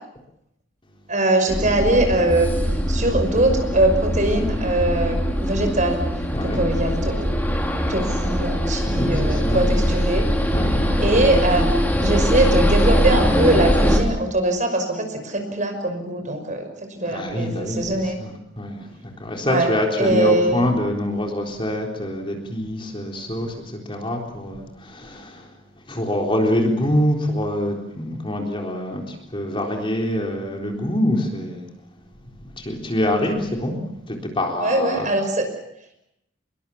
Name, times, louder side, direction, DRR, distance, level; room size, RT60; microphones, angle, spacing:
voice 1, 1.1-2.5 2.9-6.0 6.4-7.3 7.9-10.3 11.0-11.7 12.0-18.2 19.5-20.7 34.5-35.5, right 1 dB, 40° right, 6 dB, 5.8 m, -22 dB
sound 1, 1.5-14.0, equal, 10° left, 4.1 m, -21 dB
voice 2, 6.3-6.6 8.9-9.9 10.5-11.0 17.1-25.5 25.9-31.7 32.4-33.8 34.1-35.1, left 1 dB, 25° left, 1 dB, 3.9 m, -25 dB
26.0 x 22.5 x 7.2 m, 0.81 s
head